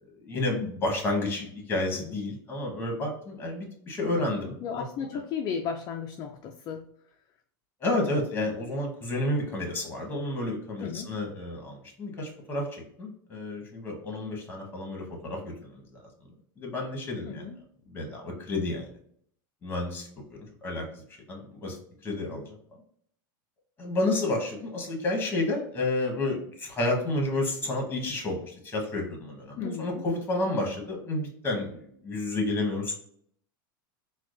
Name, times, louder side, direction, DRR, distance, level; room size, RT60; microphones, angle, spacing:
voice 1, 0.2-4.8 7.8-15.8 16.6-17.5 17.9-18.9 19.6-20.8 21.3-21.8 22.0-22.6 23.8-32.9, left 2 dB, 20° left, 1.2 m, -30 dB
voice 2, 4.6-6.9 10.8-11.2 17.2-17.6 29.6-30.0, left 7 dB, 35° left, 0.4 m, -34 dB
4.5 x 2.2 x 2.5 m
supercardioid pair, 130°, 12 cm